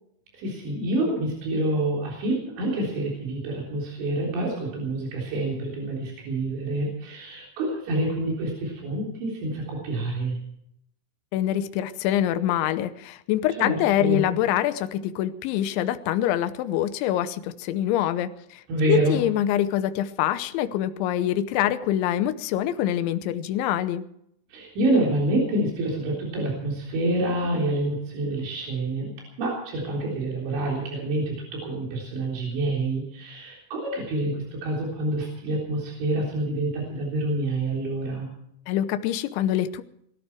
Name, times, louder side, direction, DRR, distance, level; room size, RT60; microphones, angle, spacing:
voice 1, 0.3-10.4 13.6-14.3 18.7-19.2 24.5-29.1 29.4-38.3, right 1 dB, 90° right, -2 dB, 6.1 m, -27 dB
voice 2, 11.3-24.0 38.7-39.8, left 12 dB, 85° left, 11 dB, 3.2 m, -25 dB
23.0 x 13.5 x 4.6 m, 0.75 s
omnidirectional pair, 5.2 m